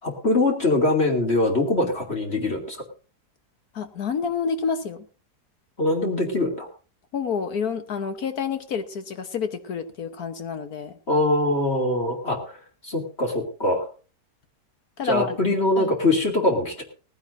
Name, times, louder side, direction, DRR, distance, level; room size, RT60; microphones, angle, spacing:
voice 1, 0.0-2.8 5.8-6.7 11.1-12.6 12.8-13.9 15.0-16.8, left 2 dB, 40° left, 1 dB, 2.8 m, -23 dB
voice 2, 3.7-5.0 7.1-10.9 15.0-15.4 15.8-15.9, left 6 dB, 65° left, 8 dB, 1.5 m, -28 dB
19.0 x 15.5 x 2.6 m, 0.36 s
omnidirectional pair, 1.8 m